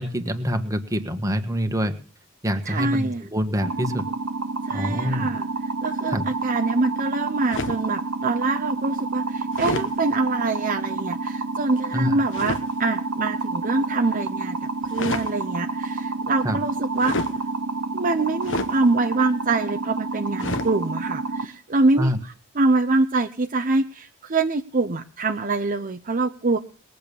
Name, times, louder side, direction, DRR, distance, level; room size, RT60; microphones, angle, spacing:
voice 1, 0.0-1.9 2.4-4.0 4.7-5.3 6.1-6.3 11.9-12.2 16.4-16.6 22.0-22.2, equal, 15° right, 6 dB, 1.7 m, -25 dB
voice 2, 2.7-3.2 4.7-5.5 5.8-14.6 14.9-17.2 17.9-22.1 22.6-26.6, right 3 dB, 40° right, 6 dB, 0.8 m, -24 dB
sound 1, 3.6-21.4, right 3 dB, 80° right, 1.2 m, -29 dB
sound 2, 7.5-7.9 9.5-9.9 12.3-12.6 14.8-15.3 17.0-17.4 18.4-18.8 20.4-20.7, left 3 dB, 60° left, 1.3 m, -29 dB
21.0 x 8.0 x 7.0 m, 0.38 s
head